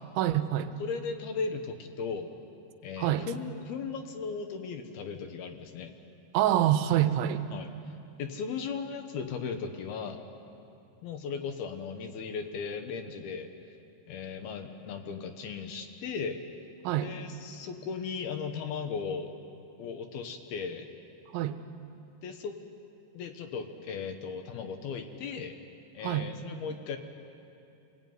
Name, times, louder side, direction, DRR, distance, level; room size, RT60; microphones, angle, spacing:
voice 1, 0.2-0.7 3.0-3.3 6.3-7.5 16.8-17.1 21.3-21.6 26.0-26.3, right 12 dB, 90° right, 10 dB, 3.2 m, -26 dB
voice 2, 0.8-2.3 2.8-5.9 7.5-7.7 8.2-10.2 11.0-13.5 14.1-16.4 17.0-19.3 19.8-20.9 22.2-22.6 23.1-25.6 25.9-27.0, left 5 dB, 65° left, 6 dB, 2.8 m, -37 dB
27.0 x 20.5 x 9.4 m, 2.7 s
omnidirectional pair, 5.3 m